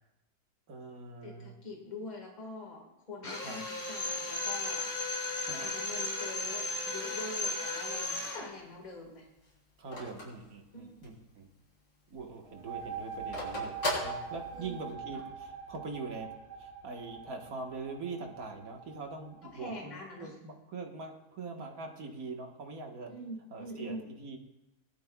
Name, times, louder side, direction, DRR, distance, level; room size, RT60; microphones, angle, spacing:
voice 1, 0.7-1.5 3.4-3.6 5.5-5.7 9.8-11.5 12.1-13.8 14.0-23.1 23.5-24.4, right 4 dB, 60° right, 2 dB, 1.9 m, -43 dB
voice 2, 1.2-4.9 5.6-9.3 10.7-11.0 14.5-14.7 15.1-15.2 19.4-20.3 23.1-24.1, left 1 dB, 25° left, 0 dB, 1.9 m, -44 dB
Drill, 3.2-8.5, left 2 dB, 70° left, 2.7 m, -35 dB
Telephone, 7.9-11.3 11.7-11.8 12.0-14.9, left 1 dB, 90° left, 4.0 m, -38 dB
sound 1, 12.4-19.9, right 6 dB, 80° right, 2.0 m, -44 dB
19.0 x 12.0 x 2.3 m, 0.95 s
omnidirectional pair, 1.7 m